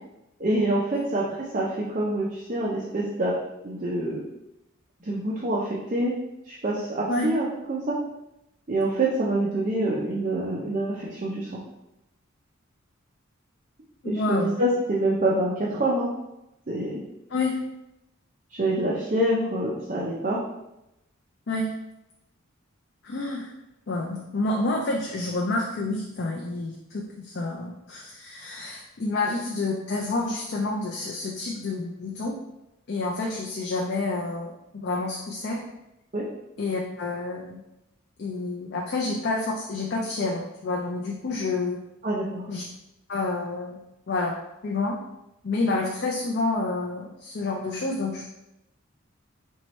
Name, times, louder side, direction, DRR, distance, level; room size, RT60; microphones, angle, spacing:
voice 1, 0.4-3.3 3.6-4.2 5.0-6.1 6.5-8.0 8.7-11.5 14.1-16.1 16.7-17.0 18.5-20.4 36.1-36.3 42.0-42.5, right 1 dB, 40° right, -5 dB, 0.6 m, -26 dB
voice 2, 14.0-14.5 17.3-17.6 21.5-21.7 23.0-23.5 23.9-32.3 32.9-35.6 36.6-37.6 38.2-41.8 42.5-42.6 43.1-43.8 44.1-44.4 44.6-45.0 45.4-48.2, left 2 dB, 55° left, -1 dB, 0.4 m, -29 dB
4.5 x 3.1 x 3.1 m, 0.89 s
head